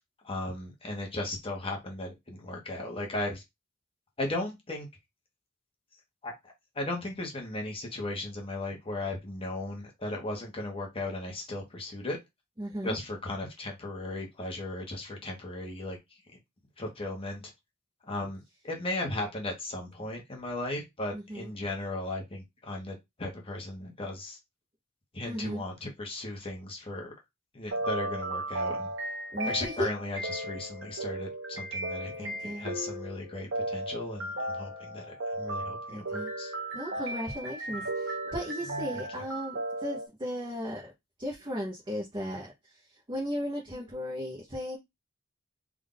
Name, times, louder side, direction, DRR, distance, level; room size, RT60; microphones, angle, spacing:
voice 1, 0.2-3.4 4.2-4.9 6.2-6.3 6.7-12.2 12.8-16.0 16.8-17.5 18.0-24.4 25.1-27.1 27.5-28.9 29.4-36.5 38.7-39.0, left 2 dB, 30° left, 0 dB, 1.2 m, -36 dB
voice 2, 12.6-13.0 21.1-21.5 25.3-25.6 29.3-29.9 32.2-32.7 35.9-36.3 36.7-40.9 41.2-42.5 43.1-44.8, equal, 25° right, -2 dB, 0.9 m, -36 dB
sound 1, 27.7-40.1, right 1 dB, 65° right, 1.1 m, -35 dB
3.6 x 2.6 x 3.8 m, 0.19 s
head